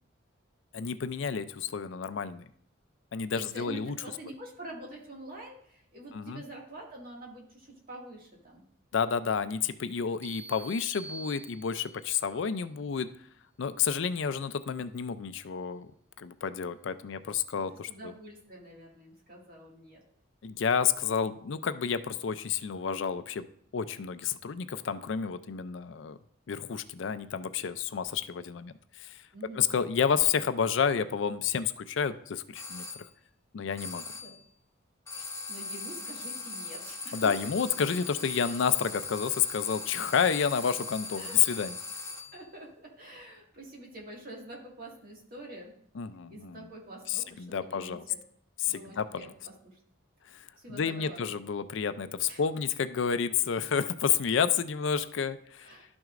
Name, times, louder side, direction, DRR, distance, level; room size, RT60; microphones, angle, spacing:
voice 1, 0.7-2.5 3.1-4.0 6.1-6.4 8.9-13.1 13.6-15.9 16.2-18.1 20.4-23.5 23.7-26.2 26.5-28.7 29.0-29.1 29.5-32.8 33.5-34.0 37.1-41.7 46.0-46.7 47.1-48.0 48.6-49.3 50.7-55.7, left 7 dB, 70° left, 12 dB, 0.4 m, -30 dB
voice 2, 3.3-8.6 17.9-20.0 29.3-29.6 34.2-34.3 35.1-37.3 41.2-41.4 42.3-45.7 46.3-48.2 48.7-49.8 50.6-51.2 52.3-52.4 55.6-55.8, right 2 dB, 50° right, -3 dB, 2.0 m, -46 dB
sound 1, 10.2-12.1, right 3 dB, 30° right, 0.7 m, -46 dB
sound 2, 32.5-33.1 33.8-34.4 35.1-42.4, left 4 dB, 15° left, 0.6 m, -40 dB
11.5 x 6.1 x 2.5 m, 0.64 s
head